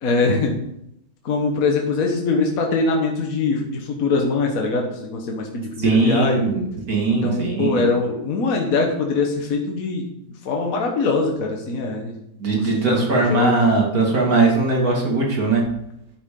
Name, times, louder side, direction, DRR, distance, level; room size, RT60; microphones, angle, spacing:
voice 1, 0.0-0.6 1.2-6.4 7.2-10.1 10.4-12.1 12.5-13.6, left 3 dB, 65° left, 2 dB, 1.6 m, -22 dB
voice 2, 5.8-7.9 12.4-15.6, right 3 dB, 70° right, -1 dB, 2.7 m, -19 dB
10.0 x 8.7 x 3.8 m, 0.79 s
omnidirectional pair, 1.6 m